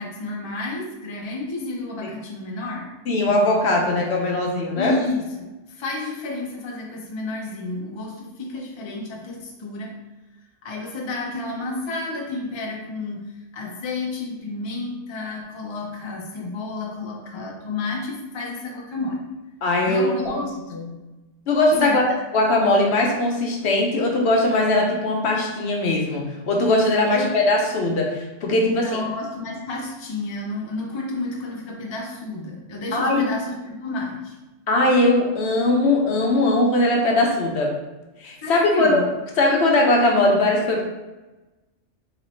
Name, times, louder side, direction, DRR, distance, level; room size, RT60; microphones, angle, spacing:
voice 1, 0.0-2.9 4.7-10.0 10.6-19.2 19.8-20.8 21.8-22.1 27.1-27.3 28.6-34.4 38.4-39.1, left 2 dB, 30° left, -2 dB, 0.5 m, -31 dB
voice 2, 3.1-4.9 19.6-20.2 20.8-20.9 21.5-22.0 22.3-29.0 32.9-33.2 34.7-37.8 38.2-39.0 39.4-40.8, left 2 dB, 65° left, 0 dB, 1.0 m, -20 dB
4.1 x 3.0 x 3.0 m, 1.1 s
omnidirectional pair, 1.2 m